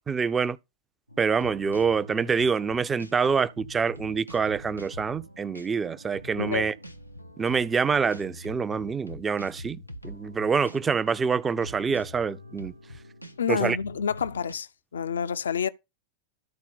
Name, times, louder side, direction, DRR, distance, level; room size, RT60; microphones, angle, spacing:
voice 1, 0.1-0.6 1.2-6.7 7.4-9.8 10.0-12.7 13.5-13.8, right 5 dB, 20° right, 0.5 m, -26 dB
sound 1, 1.1-14.5, equal, 90° left, 0.9 m, -44 dB
voice 2, 13.4-15.7, left 7 dB, 70° left, 0.4 m, -28 dB
13.0 x 4.4 x 5.5 m
figure-of-eight pair, 90°, 0 cm